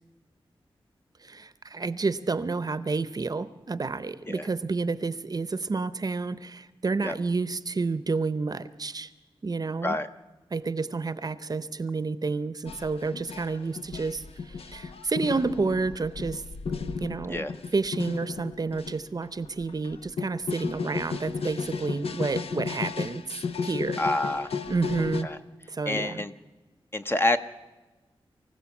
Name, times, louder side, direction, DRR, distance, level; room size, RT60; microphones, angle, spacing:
voice 1, 1.2-9.1 9.4-10.0 10.5-16.4 17.0-17.5 17.7-23.4 23.6-24.0 24.7-25.3 25.7-26.2, right 4 dB, 40° right, 14 dB, 0.7 m, -30 dB
sound 1, 12.7-18.9 19.2-25.2, left 5 dB, 85° left, 0.9 m, -34 dB
voice 2, 24.0-24.6 25.2-25.4 25.9-26.3 26.9-27.4, left 2 dB, 25° left, 9 dB, 0.7 m, -27 dB
24.0 x 15.5 x 7.2 m, 1.2 s
wide cardioid pair, 120°, 10 cm